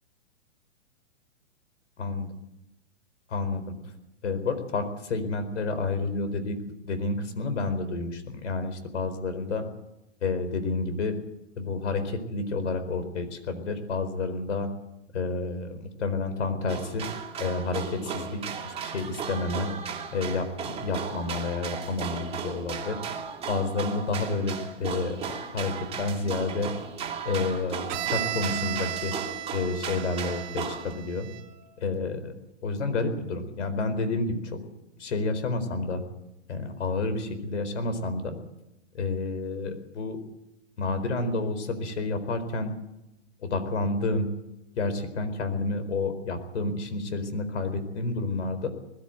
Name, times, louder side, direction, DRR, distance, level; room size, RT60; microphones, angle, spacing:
voice 1, 3.3-3.7 4.2-6.6 6.8-9.7 10.2-11.2 11.6-14.7 15.1-17.1 17.4-19.7 20.1-23.0 23.5-25.3 25.5-26.7 27.2-29.1 29.5-31.3 31.8-32.4 32.6-34.6 35.0-36.0 36.5-38.4 38.9-40.2 40.8-42.7 43.4-44.3 44.8-48.7, left 3 dB, 75° left, 10 dB, 4.5 m, -30 dB
sound 1, 16.7-30.9, right 6 dB, 15° right, 2.6 m, -36 dB
Bowed string instrument, 27.9-31.6, right 13 dB, 35° right, 1.6 m, -35 dB
21.0 x 13.5 x 9.4 m, 0.92 s
hypercardioid pair, 140°, 36 cm